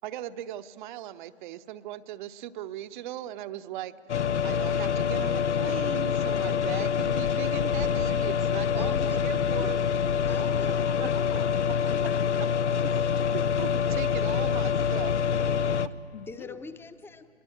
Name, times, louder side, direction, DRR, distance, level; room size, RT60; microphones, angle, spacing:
voice 1, 0.0-3.9 4.4-9.8 11.0-11.1 12.8-13.1 13.6-15.1, right 12 dB, 45° right, 13 dB, 0.8 m, -38 dB
sound 1, 4.1-15.9, left 7 dB, 85° left, 0.7 m, -26 dB
voice 2, 8.7-9.7 10.3-11.1 16.3-17.3, left 3 dB, 5° left, 12 dB, 0.8 m, -43 dB
voice 3, 10.4-13.0 16.1-16.6, left 10 dB, 60° left, 13 dB, 1.1 m, -43 dB
26.0 x 21.5 x 7.8 m, 2.4 s
figure-of-eight pair, 115°, 34 cm